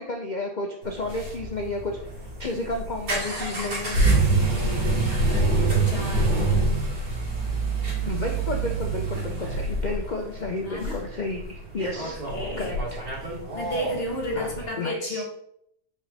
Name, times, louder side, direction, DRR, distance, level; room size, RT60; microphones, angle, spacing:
voice 1, 0.0-2.0 2.4-4.0 8.0-12.2 12.6-13.0 14.4-14.5 14.8-15.2, left 2 dB, 85° left, 1 dB, 0.4 m, -31 dB
sound 1, 0.8-14.7, right 3 dB, 75° right, 2.8 m, -26 dB
voice 2, 4.5-6.9 10.6-11.0 12.0-12.9 13.5-15.2, left 1 dB, 40° left, 0 dB, 1.4 m, -33 dB
5.2 x 4.9 x 4.1 m, 0.72 s
omnidirectional pair, 1.8 m